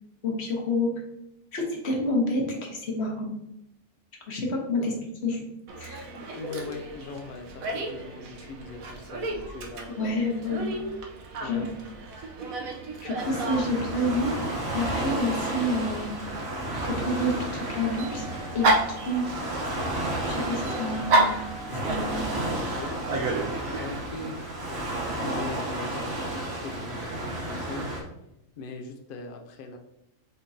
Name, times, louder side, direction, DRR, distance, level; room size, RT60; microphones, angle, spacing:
voice 1, 0.2-0.9 1.5-3.3 4.3-4.9 5.2-5.4 5.8-6.1 10.0-10.7 11.4-11.7 13.0-14.3 14.7-16.3 16.8-18.3 18.5-18.8 19.1-19.3 20.2-21.4 21.9-22.2, left 1 dB, 50° left, 0 dB, 1.2 m, -28 dB
Dog, 5.7-24.0, right 2 dB, 70° right, 1.2 m, -32 dB
voice 2, 6.3-9.9 11.4-11.9 20.6-21.0 21.7-22.9 23.7-27.9 28.6-29.8, left 3 dB, 75° left, 4 dB, 0.5 m, -40 dB
Waves surf, 13.2-28.0, right 1 dB, 50° right, 1.2 m, -32 dB
5.5 x 3.6 x 2.7 m, 0.81 s
omnidirectional pair, 1.6 m